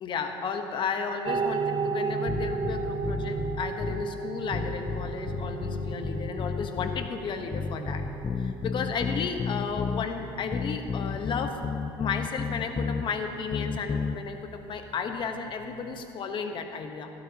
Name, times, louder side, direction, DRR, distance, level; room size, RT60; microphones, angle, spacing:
voice 1, 0.0-8.0 8.4-11.6 12.0-17.1, left 5 dB, 45° left, 6 dB, 1.2 m, -33 dB
sound 1, 1.2-16.0, right 5 dB, 45° right, 0.7 m, -36 dB
sound 2, 2.3-4.1 4.5-7.1 7.5-10.1 10.5-13.0 13.5-14.2, left 6 dB, 25° left, 0.4 m, -32 dB
17.5 x 12.0 x 3.0 m, 2.7 s
supercardioid pair, 95°, 12 cm